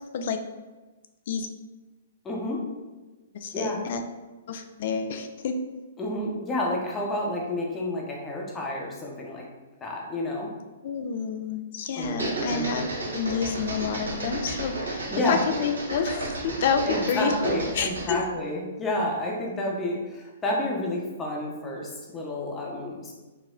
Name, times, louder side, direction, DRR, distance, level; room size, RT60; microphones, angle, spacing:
voice 1, 2.2-2.6 3.5-3.8 6.0-9.4 9.8-10.5 12.0-12.2 12.5-13.0 15.1-15.4 16.9-23.1, left 1 dB, 15° left, -2 dB, 0.9 m, -30 dB
voice 2, 3.3-4.0 4.5-5.6 10.8-12.9 13.1-17.3 17.7-18.2, left 6 dB, 55° left, 7 dB, 0.4 m, -29 dB
sound 1, 12.0-18.2, right 2 dB, 85° right, 1.0 m, -33 dB
4.2 x 2.1 x 3.7 m, 1.2 s
hypercardioid pair, 125°, 0 cm